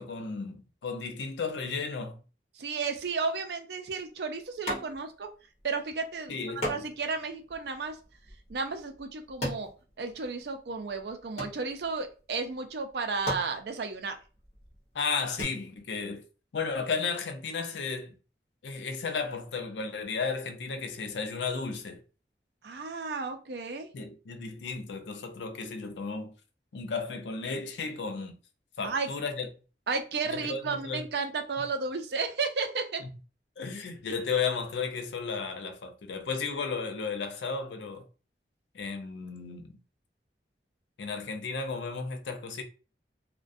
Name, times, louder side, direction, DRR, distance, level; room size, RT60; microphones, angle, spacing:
voice 1, 0.0-2.2 6.3-6.6 14.9-16.2 16.5-18.1 18.6-22.0 23.9-26.3 26.7-28.3 28.8-29.5 30.3-31.0 33.6-38.1 38.7-39.8 41.0-42.6, left 5 dB, 90° left, 0.5 m, -34 dB
voice 2, 2.5-5.3 5.6-6.4 6.7-8.0 8.5-9.7 10.0-14.2 22.6-23.9 28.8-29.1 29.9-33.0, right 4 dB, 70° right, 0.4 m, -33 dB
sound 1, 4.7-5.3 5.6-5.7 6.6-10.5 10.9-12.1 12.8-12.9 13.2-15.4, equal, 40° left, 1.1 m, -38 dB
2.4 x 2.1 x 2.5 m
head